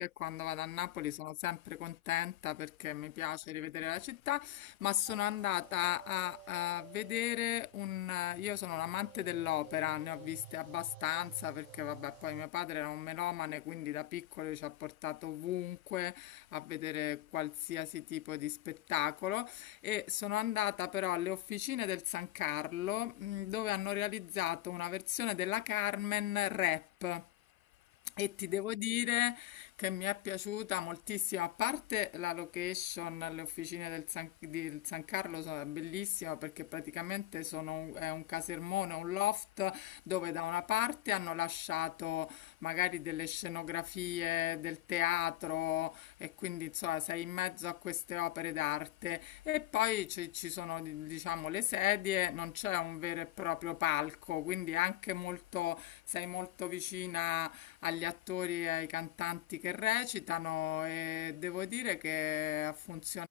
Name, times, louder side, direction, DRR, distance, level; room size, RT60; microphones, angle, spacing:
voice 1, 0.0-27.3 28.0-63.3, left 14 dB, 70° left, 1.1 m, -36 dB
sound 1, 5.1-12.5, right 16 dB, 65° right, 1.9 m, -53 dB
hypercardioid pair, 100°, 43 cm